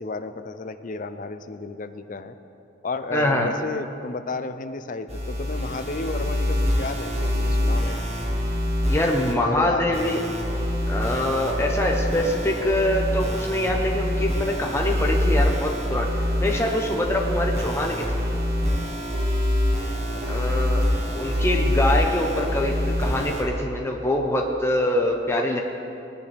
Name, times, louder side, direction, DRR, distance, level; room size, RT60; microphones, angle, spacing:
voice 1, 0.0-2.4 2.8-8.0 9.4-10.2, left 3 dB, 45° left, 10 dB, 0.5 m, -32 dB
voice 2, 3.1-3.5 8.9-10.2 10.9-16.1 16.4-18.1 20.3-20.8 21.1-25.6, left 1 dB, 15° left, 0 dB, 0.8 m, -24 dB
sound 1, 5.1-9.3 9.9-23.4, left 1 dB, 35° right, 1.7 m, -25 dB
19.0 x 10.5 x 3.4 m, 2.7 s
head